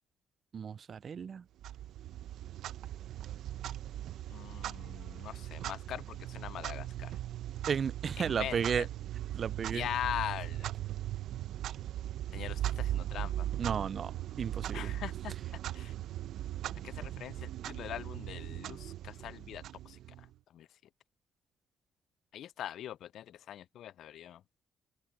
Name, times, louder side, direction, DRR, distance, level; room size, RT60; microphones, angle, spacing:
voice 1, 0.5-1.4 7.7-8.9 9.3-9.9 13.6-14.1 14.4-14.9, right 7 dB, 50° right, 0.3 m, -33 dB
Clock, 1.6-20.3, right 12 dB, 75° right, 0.8 m, -39 dB
voice 2, 4.3-7.2 8.2-8.9 9.7-10.7 12.3-13.5 14.7-15.3 15.7-15.9 16.8-20.3 20.5-20.7 22.3-24.4, left 11 dB, 75° left, 0.4 m, -41 dB
open air
cardioid pair, 90°, 0 cm